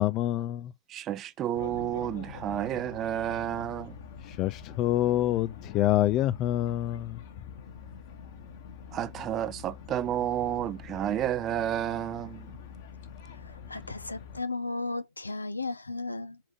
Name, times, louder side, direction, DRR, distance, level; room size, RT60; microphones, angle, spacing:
voice 1, 0.0-0.7 4.3-7.2, left 14 dB, 40° left, 0.4 m, -26 dB
voice 2, 0.9-3.9 8.9-12.5, right 11 dB, 30° right, 0.7 m, -31 dB
sound 1, 1.6-14.4, left 6 dB, 55° left, 1.9 m, -45 dB
voice 3, 13.3-16.4, left 3 dB, 80° left, 0.8 m, -35 dB
5.8 x 4.9 x 5.1 m
figure-of-eight pair, 90°, 0 cm